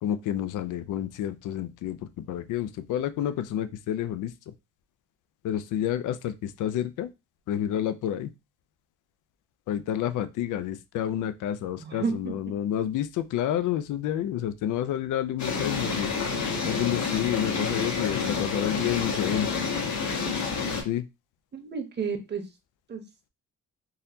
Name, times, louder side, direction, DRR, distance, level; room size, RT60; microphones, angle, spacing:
voice 1, 0.0-4.3 5.4-7.1 7.5-8.3 9.7-16.1 16.6-19.5 20.8-21.0, left 11 dB, 80° left, 11 dB, 0.5 m, -29 dB
voice 2, 11.8-12.3 21.5-22.4 22.9-23.0, right 5 dB, 35° right, 5 dB, 0.9 m, -31 dB
sound 1, 15.4-20.8, left 5 dB, 65° left, 1.3 m, -29 dB
4.0 x 2.7 x 2.7 m, 0.25 s
cardioid pair, 100°, 31 cm